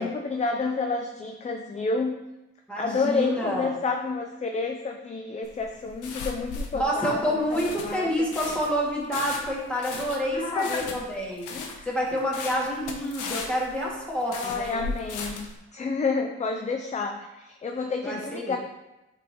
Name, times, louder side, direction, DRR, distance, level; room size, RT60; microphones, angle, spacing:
voice 1, 0.0-2.2 2.8-8.3 10.3-11.0 11.5-11.9 14.3-15.4 15.7-18.6, left 4 dB, 25° left, 4 dB, 0.5 m, -29 dB
voice 2, 2.7-3.7 6.8-11.5 11.9-14.8 18.0-18.6, equal, 5° left, -5 dB, 2.2 m, -28 dB
sound 1, 5.4-15.6, left 4 dB, 85° left, 1.0 m, -37 dB
8.4 x 4.1 x 3.0 m, 0.98 s
cardioid pair, 90°, 30 cm